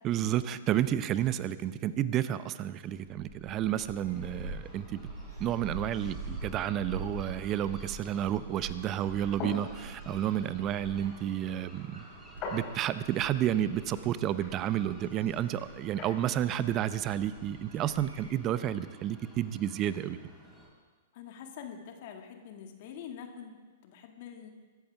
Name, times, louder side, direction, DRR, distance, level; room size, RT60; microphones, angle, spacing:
voice 1, 0.0-5.0 5.4-12.0 12.5-20.2, right 11 dB, 30° right, 14 dB, 0.8 m, -31 dB
Gull seagull, 2.8-18.3, right 2 dB, 80° right, 5.4 m, -45 dB
sound 1, 4.0-20.7, right 1 dB, 5° right, 5.0 m, -54 dB
sound 2, 9.0-16.2, left 3 dB, 35° left, 4.7 m, -45 dB
voice 2, 21.1-23.6 23.8-24.5, left 8 dB, 55° left, 4 dB, 2.0 m, -45 dB
24.5 x 14.0 x 3.5 m, 1.4 s
hypercardioid pair, 110°, 0 cm